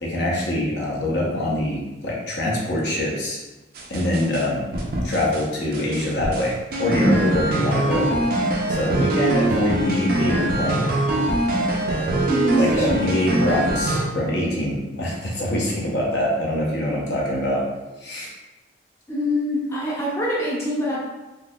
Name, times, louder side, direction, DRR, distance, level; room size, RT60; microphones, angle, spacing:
voice 1, 0.0-3.4 3.9-4.6 5.0-8.1 8.7-10.9 12.6-17.6 18.0-18.3, left 1 dB, 60° left, -3 dB, 0.7 m, -24 dB
sound 1, 3.8-4.4 4.7-5.4 5.7-14.0, right 1 dB, 50° right, 0.4 m, -23 dB
voice 2, 7.0-7.4 12.3-13.2 19.1-21.0, equal, 15° left, -6 dB, 0.6 m, -24 dB
3.8 x 2.7 x 2.2 m, 1.1 s
head